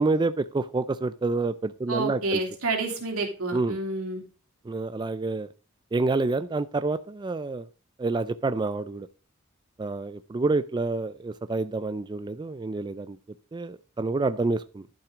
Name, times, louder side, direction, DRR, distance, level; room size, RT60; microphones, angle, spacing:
voice 1, 0.0-2.4 3.5-3.8 4.7-5.5 5.9-7.7 8.0-9.1 9.8-13.2 13.5-14.9, right 3 dB, 20° right, 12 dB, 0.3 m, -28 dB
voice 2, 1.9-4.2, right 3 dB, 90° right, 2 dB, 2.9 m, -29 dB
11.5 x 5.9 x 3.6 m, 0.36 s
head